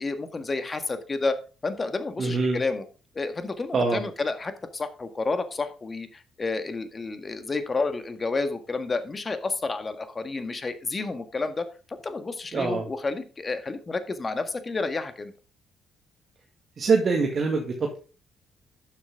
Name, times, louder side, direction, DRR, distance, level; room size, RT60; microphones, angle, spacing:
voice 1, 0.0-1.4 1.6-2.9 3.1-11.7 12.0-15.3, left 3 dB, 35° left, 9 dB, 1.7 m, -30 dB
voice 2, 2.2-2.6 3.7-4.0 12.5-12.9 16.8-18.0, right 4 dB, 50° right, 2 dB, 2.0 m, -24 dB
12.0 x 7.6 x 3.7 m, 0.36 s
hypercardioid pair, 45°, 0 cm